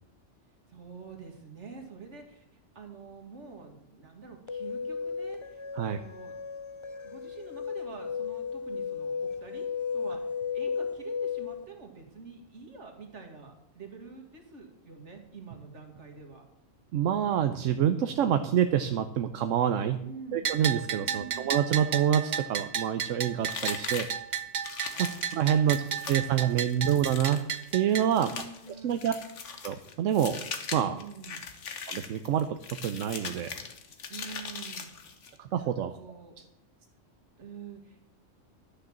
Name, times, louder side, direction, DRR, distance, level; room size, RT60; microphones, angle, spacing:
voice 1, 0.7-6.3 7.0-9.7 9.9-16.4 20.0-20.4 21.0-21.5 24.9-25.3 25.6-26.9 28.1-29.0 30.7-31.4 34.1-36.4 37.4-38.1, right 5 dB, 65° right, 3 dB, 2.3 m, -47 dB
sound 1, 4.5-11.6, left 6 dB, 45° left, 0.4 m, -35 dB
voice 2, 16.9-20.0 20.3-24.1 25.0-27.4 27.7-28.3 28.8-29.1 29.6-30.4 30.7-30.9 31.9-33.5 35.4-35.9, right 9 dB, 85° right, 9 dB, 1.0 m, -27 dB
Bell, 20.4-28.1, right 7 dB, 45° right, 0.7 m, -33 dB
sound 2, 23.5-35.4, left 5 dB, 70° left, 1.5 m, -40 dB
11.5 x 6.7 x 7.3 m, 0.83 s
omnidirectional pair, 1.3 m